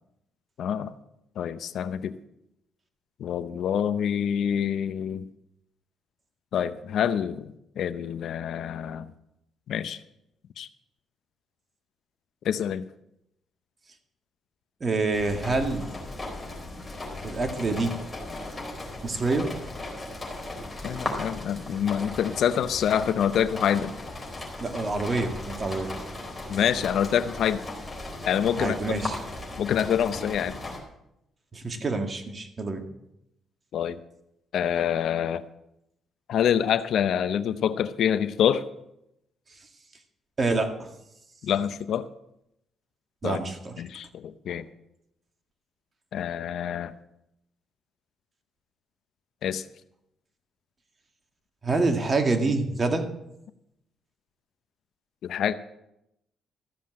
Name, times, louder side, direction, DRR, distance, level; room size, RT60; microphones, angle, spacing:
voice 1, 0.6-0.9 1.4-2.2 3.2-5.2 6.5-9.1 9.7-10.0 10.6-10.7 12.4-12.8 20.8-23.9 26.5-27.6 28.3-28.8 29.6-30.6 33.7-34.0 34.5-35.4 36.3-38.6 41.4-42.1 43.2-43.4 43.8-44.6 46.1-46.9 49.4-49.6 55.2-55.5, left 9 dB, 70° left, 13 dB, 0.6 m, -26 dB
voice 2, 14.8-15.9 17.2-18.0 19.0-19.5 24.6-25.9 28.6-29.2 31.5-32.9 40.4-40.9 43.2-43.8 44.5-44.6 51.6-53.1, right 3 dB, 35° right, 5 dB, 2.0 m, -27 dB
sound 1, 15.1-30.8, left 2 dB, 15° left, 4.3 m, -37 dB
14.0 x 7.4 x 7.6 m, 0.82 s
cardioid pair, 90°, 0 cm